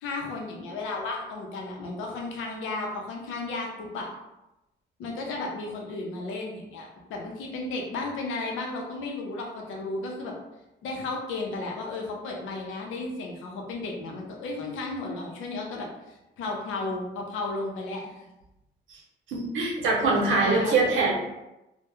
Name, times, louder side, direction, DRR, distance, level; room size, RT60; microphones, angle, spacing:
voice 1, 0.0-4.1 5.0-10.3 10.8-18.2 20.2-20.9, left 3 dB, 85° left, 0 dB, 0.6 m, -34 dB
voice 2, 19.3-21.1, right 3 dB, 80° right, -2 dB, 0.8 m, -23 dB
2.2 x 2.1 x 2.9 m, 0.94 s
cardioid pair, 90°, 20 cm